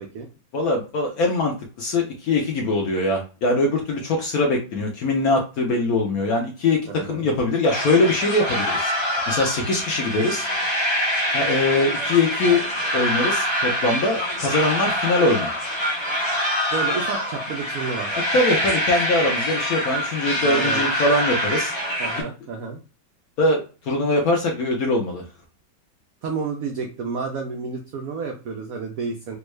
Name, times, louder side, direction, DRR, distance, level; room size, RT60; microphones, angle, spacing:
voice 1, 0.5-8.9 9.3-10.5 11.3-12.6 12.9-15.5 18.3-21.7 23.4-25.2, left 2 dB, 65° left, 1 dB, 0.9 m, -22 dB
voice 2, 7.0-7.3 16.7-18.1 20.4-20.8 22.0-22.8 26.2-29.4, right 4 dB, 85° right, 2 dB, 0.7 m, -30 dB
sound 1, 7.7-22.2, equal, 20° left, 0.7 m, -25 dB
3.5 x 2.2 x 3.1 m, 0.34 s
omnidirectional pair, 2.1 m